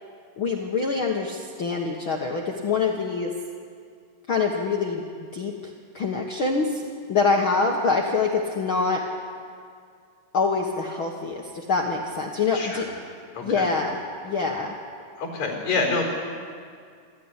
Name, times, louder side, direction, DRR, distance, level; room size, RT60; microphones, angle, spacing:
voice 1, 0.4-3.3 4.3-5.0 5.3-6.8 7.1-9.0 10.3-12.9 13.4-14.7, left 4 dB, 70° left, 0 dB, 1.2 m, -25 dB
voice 2, 12.5-13.0 13.3-13.7 15.2-16.0, left 3 dB, 45° left, 1 dB, 5.6 m, -27 dB
25.5 x 13.5 x 9.9 m, 2.2 s
omnidirectional pair, 4.6 m